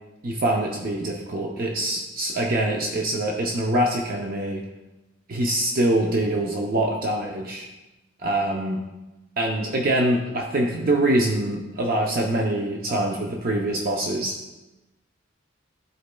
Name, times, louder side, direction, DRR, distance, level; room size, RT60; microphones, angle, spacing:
voice 1, 0.2-4.6 5.3-7.7 8.2-8.8 9.4-14.3, right 1 dB, 50° right, 0 dB, 0.6 m, -24 dB
12.5 x 4.2 x 2.2 m, 1.0 s
head